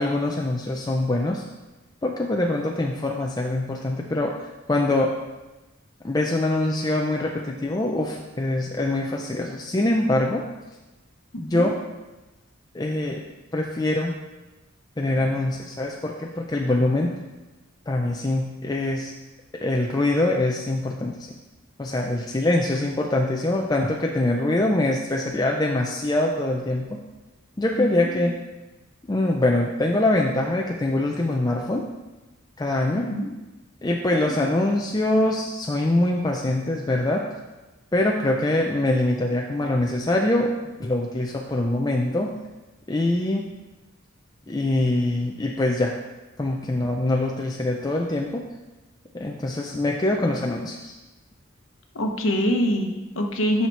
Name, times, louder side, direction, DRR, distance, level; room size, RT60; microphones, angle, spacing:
voice 1, 0.0-1.5 2.0-4.4 4.7-5.2 6.0-10.4 11.4-11.8 12.7-13.2 13.5-14.2 15.0-17.1 17.9-19.1 19.6-21.2 21.8-27.0 27.6-28.4 29.1-31.9 32.6-33.1 33.8-37.3 37.9-42.3 42.9-43.4 44.5-45.9 46.4-48.4 49.1-50.9, left 1 dB, 20° left, 0 dB, 0.5 m, -24 dB
voice 2, 51.9-53.7, equal, 70° left, 3 dB, 0.9 m, -24 dB
6.9 x 5.8 x 4.6 m, 1.1 s
head